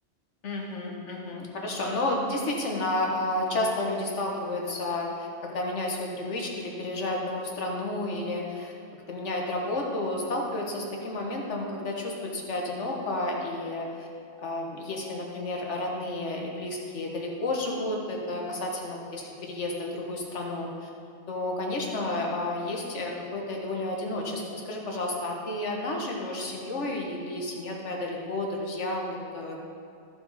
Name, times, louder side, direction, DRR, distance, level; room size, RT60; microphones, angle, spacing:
voice 1, 0.4-8.7 9.1-14.1 14.4-20.9 21.3-29.6, left 2 dB, 85° left, -1 dB, 1.5 m, -31 dB
13.5 x 4.9 x 4.0 m, 2.4 s
omnidirectional pair, 1.2 m